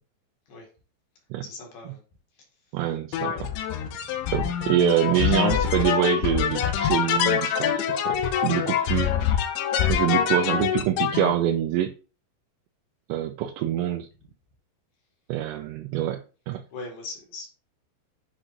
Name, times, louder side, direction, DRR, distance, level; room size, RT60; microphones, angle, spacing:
voice 1, 1.4-2.0 3.7-4.4 16.7-17.5, left 3 dB, 60° left, 3.5 m, -40 dB
voice 2, 2.7-3.5 4.3-9.4 9.9-11.9 13.1-14.1 15.3-16.2 16.5-16.6, right 11 dB, 85° right, 2.7 m, -25 dB
sound 1, 3.1-11.3, left 9 dB, 80° left, 3.1 m, -25 dB
10.0 x 4.9 x 2.5 m
omnidirectional pair, 5.3 m